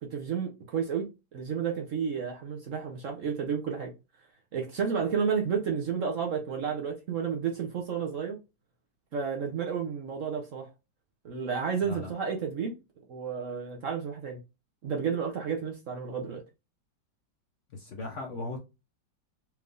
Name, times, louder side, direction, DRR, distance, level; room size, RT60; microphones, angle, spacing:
voice 1, 0.0-3.9 4.5-8.4 9.1-10.7 11.2-12.8 13.1-14.4 14.8-16.4, right 6 dB, 55° right, 1.0 m, -31 dB
voice 2, 17.7-18.6, left 2 dB, 55° left, 0.9 m, -37 dB
4.5 x 3.4 x 2.5 m
omnidirectional pair, 2.0 m